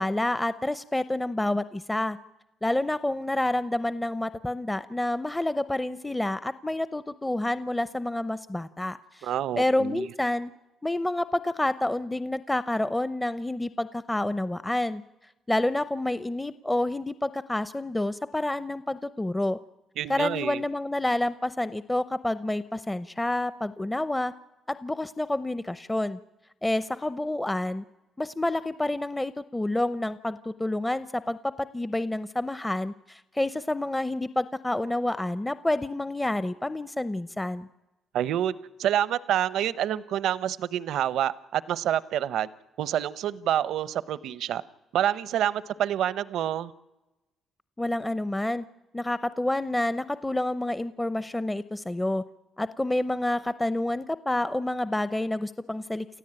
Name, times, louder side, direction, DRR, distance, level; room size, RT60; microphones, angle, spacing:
voice 1, 0.0-2.2 2.6-9.3 9.6-10.5 10.8-15.0 15.5-19.6 20.1-24.3 24.7-26.2 26.6-27.8 28.2-37.7 47.8-48.7 48.9-52.2 52.6-56.1, left 1 dB, 10° left, 13 dB, 0.7 m, -28 dB
voice 2, 9.2-10.1 20.0-20.6 38.1-42.5 42.8-44.6 44.9-46.7, right 11 dB, 80° right, 17 dB, 0.8 m, -27 dB
29.0 x 14.0 x 8.9 m, 1.0 s
cardioid pair, 90°, 0 cm